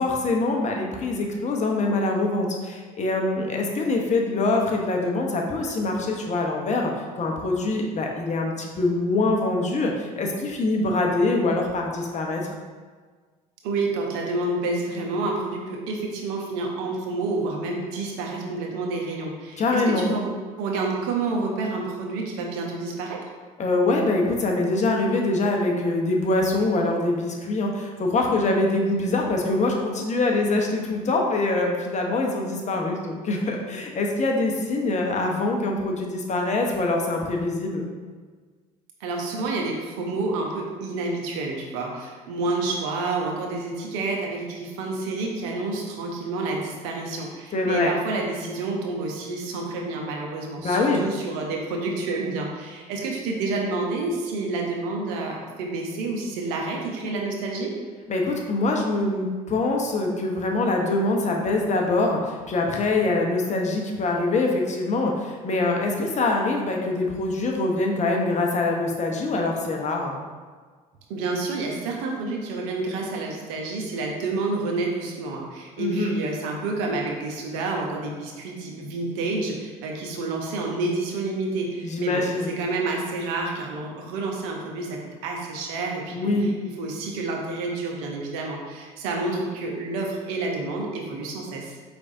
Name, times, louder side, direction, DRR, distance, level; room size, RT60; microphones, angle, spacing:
voice 1, 0.0-12.5 19.6-20.1 23.6-37.9 47.5-47.9 50.6-51.1 58.1-70.1 75.8-76.1 81.8-82.5 86.1-86.5, left 2 dB, 35° left, 1 dB, 0.8 m, -24 dB
voice 2, 13.6-23.2 39.0-57.7 71.1-82.2 82.6-86.5 86.8-91.8, right 3 dB, 75° right, 0 dB, 0.8 m, -29 dB
4.8 x 3.4 x 2.7 m, 1.5 s
hypercardioid pair, 70°, 20 cm